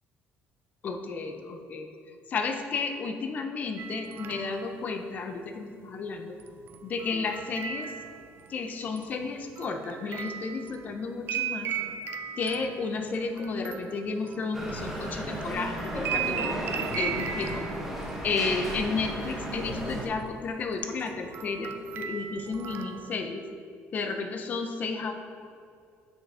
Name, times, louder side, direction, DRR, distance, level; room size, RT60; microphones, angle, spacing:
voice 1, 0.8-1.9 2.3-6.3 6.8-7.9 8.5-11.7 12.4-16.6 17.0-17.6 18.2-23.4 23.9-25.1, left 4 dB, 35° left, 6 dB, 0.6 m, -32 dB
sound 1, 3.8-4.8 6.4-8.5 9.0-15.2 15.5-18.4 18.6-19.6 19.9-20.2 20.7-23.2, right 9 dB, 45° right, 0.4 m, -37 dB
sound 2, 14.5-20.1, right 1 dB, 5° right, 0.9 m, -34 dB
6.2 x 5.4 x 4.8 m, 2.4 s
cardioid pair, 170°, 5 cm